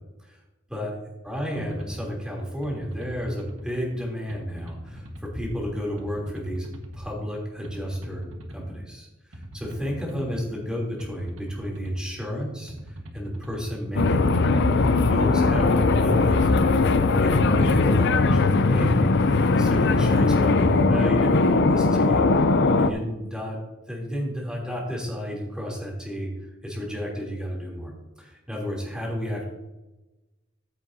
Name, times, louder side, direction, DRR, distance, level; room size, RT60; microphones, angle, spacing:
voice 1, 1.2-6.7 6.9-8.2 8.5-22.5 22.8-23.6 23.9-26.3 26.6-27.9 28.2-29.4, equal, 5° right, -3 dB, 3.1 m, -32 dB
sound 1, 1.6-2.0 2.6-3.7 4.3-5.3 6.0-7.0 7.6-8.7 9.3-10.4 11.0-12.0 12.7-13.7 14.3-15.4 16.0-17.1 17.7-18.7 19.4-20.4, equal, 80° right, 1.5 m, -41 dB
sound 2, 14.0-22.9, left 3 dB, 55° left, 0.5 m, -20 dB
14.5 x 7.5 x 2.8 m, 1.0 s
head